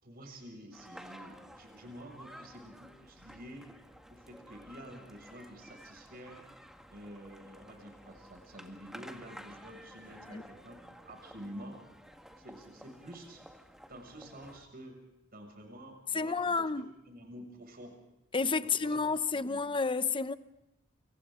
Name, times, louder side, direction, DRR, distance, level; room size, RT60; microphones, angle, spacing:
voice 1, 0.0-3.7 4.1-6.4 6.9-11.8 12.4-13.4 13.9-15.0 15.3-17.9 18.6-19.0 19.3-19.7, equal, 50° right, 6.7 m, -49 dB
sound 1, 0.7-14.7, equal, ahead, 1.7 m, -53 dB
voice 2, 16.1-16.9 18.3-20.4, left 4 dB, 25° left, 0.8 m, -30 dB
29.0 x 27.0 x 3.8 m
head